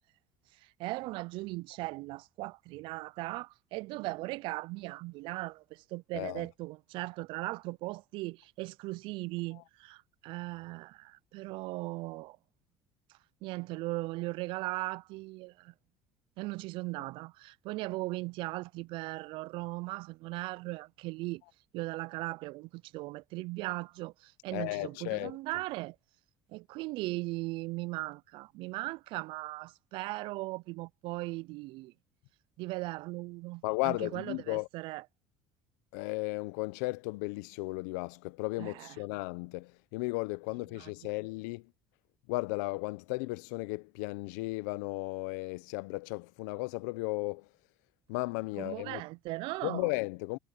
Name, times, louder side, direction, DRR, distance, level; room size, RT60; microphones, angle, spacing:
voice 1, 0.6-12.4 13.4-15.7 16.4-21.4 21.7-26.0 26.5-31.9 32.6-35.0 38.6-39.0 40.7-40.9 48.6-49.9, right 21 dB, 70° right, 0.4 m, -38 dB
voice 2, 6.1-6.5 24.5-25.4 33.6-34.7 35.9-41.7 42.3-47.5 48.1-49.0 49.6-50.4, left 25 dB, 90° left, 0.6 m, -35 dB
supercardioid pair, 100°, 9 cm